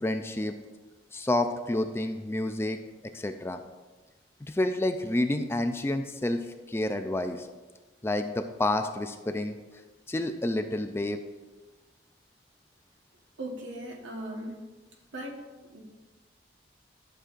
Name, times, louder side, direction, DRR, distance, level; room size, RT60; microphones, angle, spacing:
voice 1, 0.0-0.5 1.1-2.8 3.1-3.6 4.4-7.5 8.0-9.6 10.1-11.2, left 1 dB, 15° left, 7 dB, 0.3 m, -29 dB
voice 2, 13.4-14.6 15.1-15.4 15.7-15.8, right 1 dB, 85° right, 1 dB, 1.3 m, -38 dB
11.5 x 6.5 x 2.5 m, 1.2 s
head